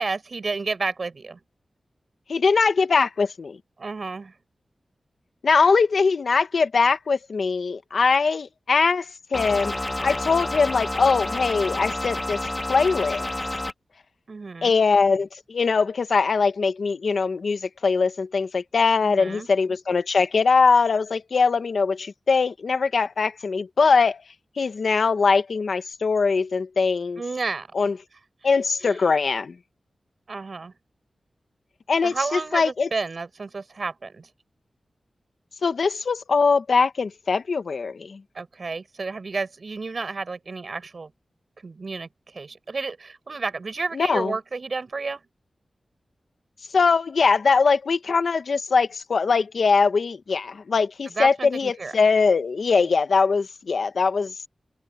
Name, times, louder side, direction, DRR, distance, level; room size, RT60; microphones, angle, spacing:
voice 1, 0.0-1.4 3.8-4.3 14.3-14.7 19.0-19.5 27.2-27.7 28.8-29.0 30.3-30.7 32.0-34.3 38.3-41.1 41.6-45.2 51.2-51.9, right 4 dB, 50° right, 7.4 m, -31 dB
voice 2, 2.3-3.6 5.4-12.4 12.7-13.3 14.6-24.2 24.6-27.2 27.7-28.0 28.4-29.6 31.9-32.9 35.6-38.2 43.9-44.3 46.7-54.3, left 4 dB, 70° left, 1.4 m, -21 dB
sound 1, 9.3-13.7, left 1 dB, 20° left, 0.8 m, -29 dB
wide cardioid pair, 120°, 0 cm